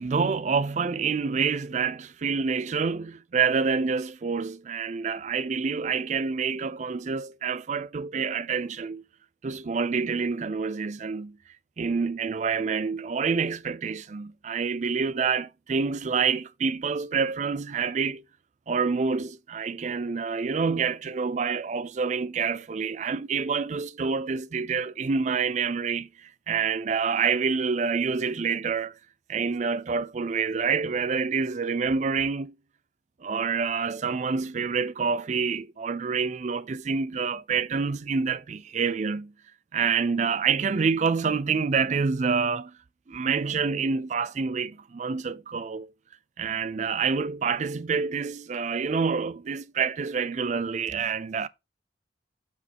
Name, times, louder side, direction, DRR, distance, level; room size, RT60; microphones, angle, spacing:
voice 1, 0.0-9.0 9.4-11.4 11.8-18.2 18.7-28.9 29.3-32.5 33.2-39.3 39.7-42.7 43.1-45.9 46.4-51.5, right 5 dB, 40° right, 0.4 m, -27 dB
8.0 x 6.3 x 2.9 m
head